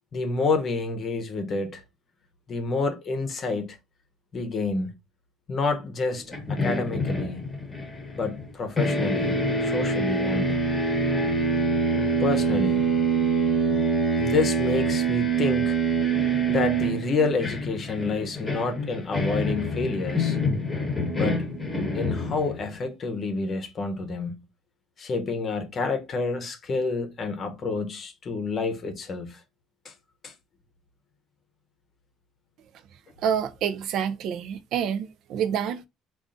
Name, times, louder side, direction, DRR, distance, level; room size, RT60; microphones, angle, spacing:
voice 1, 0.1-1.8 2.5-3.8 4.3-4.9 5.5-7.5 8.2-10.6 12.2-12.9 14.2-15.8 16.5-20.4 21.1-21.4 21.9-24.4 25.0-29.4 29.8-29.9 30.2-30.3, left 3 dB, 35° left, 0.7 m, -28 dB
sound 1, 6.3-8.5 8.8-22.7, right 2 dB, 15° left, 1.0 m, -25 dB
voice 2, 33.2-35.9, right 8 dB, 60° right, 0.5 m, -27 dB
3.8 x 2.4 x 3.7 m
cardioid pair, 130°, 0 cm